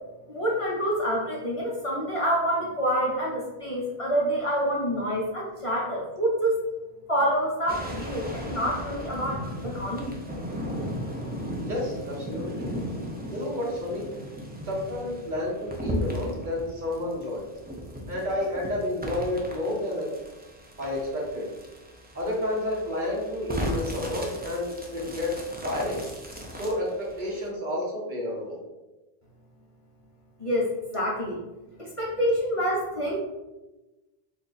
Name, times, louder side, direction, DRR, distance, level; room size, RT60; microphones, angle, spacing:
voice 1, 0.3-6.6 7.1-10.1 30.4-30.7 30.9-31.4 31.8-33.2, equal, 35° left, -5 dB, 0.8 m, -27 dB
sound 1, 7.7-27.5, equal, 10° right, 0.5 m, -36 dB
voice 2, 11.6-12.7 13.3-14.1 14.7-17.4 18.1-20.1 20.8-21.5 22.1-26.0 26.5-26.9 27.2-28.6, left 1 dB, 50° right, -3 dB, 1.0 m, -30 dB
3.5 x 2.6 x 3.9 m, 1.1 s
omnidirectional pair, 1.0 m